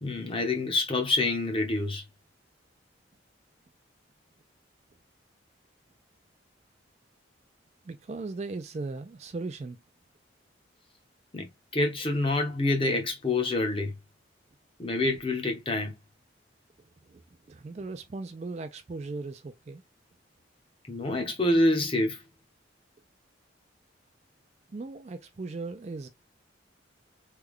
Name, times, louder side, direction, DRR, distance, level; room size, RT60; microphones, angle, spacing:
voice 1, 0.0-2.0 11.3-11.5 11.7-13.9 14.8-15.9 20.9-22.2, left 2 dB, 25° left, 0.8 m, -27 dB
voice 2, 7.9-9.8 17.1-17.2 17.5-19.8 24.7-26.1, right 3 dB, 35° right, 0.3 m, -37 dB
3.4 x 2.2 x 3.5 m
head